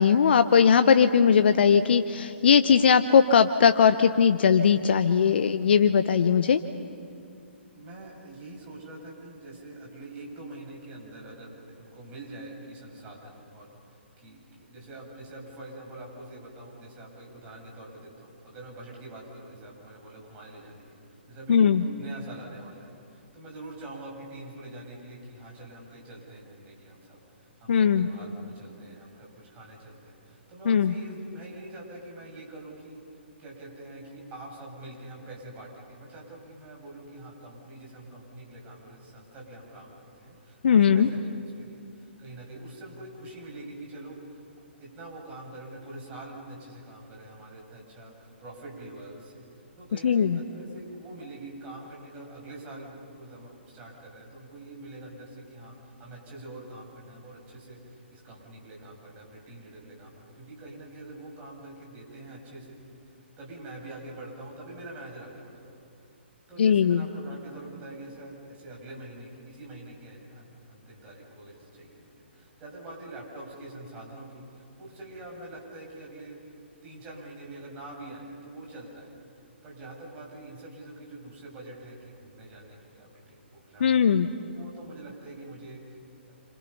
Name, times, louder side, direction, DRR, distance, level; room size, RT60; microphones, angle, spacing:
voice 1, 0.0-6.6 21.5-21.8 27.7-28.1 30.7-30.9 40.6-41.1 50.0-50.4 66.6-67.1 83.8-84.3, left 7 dB, 60° left, 10 dB, 0.9 m, -19 dB
voice 2, 7.7-21.0 21.3-21.7 22.0-44.4 44.8-62.8 63.4-65.7 66.5-76.4 76.8-79.1 79.6-84.2 84.4-86.3, right 2 dB, 25° right, -2 dB, 7.6 m, -45 dB
29.0 x 27.5 x 5.7 m, 2.4 s
figure-of-eight pair, 130°, 6 cm